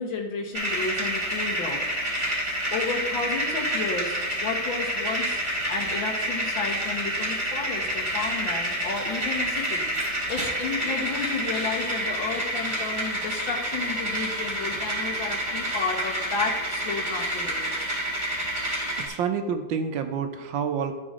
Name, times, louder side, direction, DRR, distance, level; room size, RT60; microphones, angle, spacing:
voice 1, 0.0-1.8 2.7-4.1 4.4-5.4 5.7-9.8 10.1-17.7 19.1-19.2, left 4 dB, 85° left, 1 dB, 2.1 m, -32 dB
sound 1, 0.5-19.1, right 1 dB, 30° right, 3.3 m, -28 dB
voice 2, 19.0-21.0, right 6 dB, 80° right, 6 dB, 1.5 m, -28 dB
14.0 x 5.0 x 3.7 m, 1.2 s
omnidirectional pair, 2.1 m